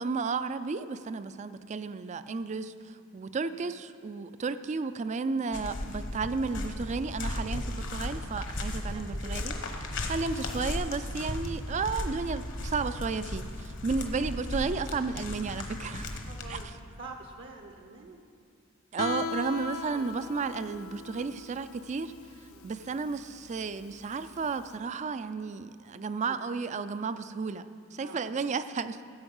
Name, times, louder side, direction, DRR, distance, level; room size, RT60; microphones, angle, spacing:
voice 1, 0.0-9.5 10.1-16.2 16.5-16.6 18.9-22.1 22.6-29.0, right 4 dB, 35° right, 13 dB, 0.4 m, -33 dB
sound 1, 5.5-16.6, left 1 dB, 65° left, 1.2 m, -36 dB
voice 2, 8.9-9.4 9.9-10.2 16.0-18.2 19.9-20.1 22.5-22.8 28.0-28.3, right 3 dB, 60° right, 2 dB, 0.9 m, -47 dB
Guitar, 19.0-24.7, left 5 dB, 80° left, 0.6 m, -39 dB
14.5 x 7.9 x 5.4 m, 2.3 s
head